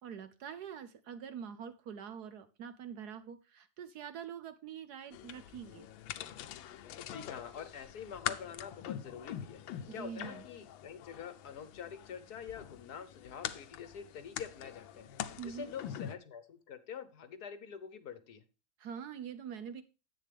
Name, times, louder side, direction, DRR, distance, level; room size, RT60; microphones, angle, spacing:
voice 1, 0.0-5.9 9.9-10.4 15.4-15.7 18.8-19.8, right 8 dB, 65° right, 12 dB, 1.1 m, -45 dB
sound 1, 5.1-16.1, left 11 dB, 80° left, 1.5 m, -44 dB
voice 2, 7.0-9.6 9.9-18.4, left 7 dB, 60° left, 12 dB, 1.3 m, -46 dB
10.5 x 8.3 x 3.4 m, 0.31 s
omnidirectional pair, 2.1 m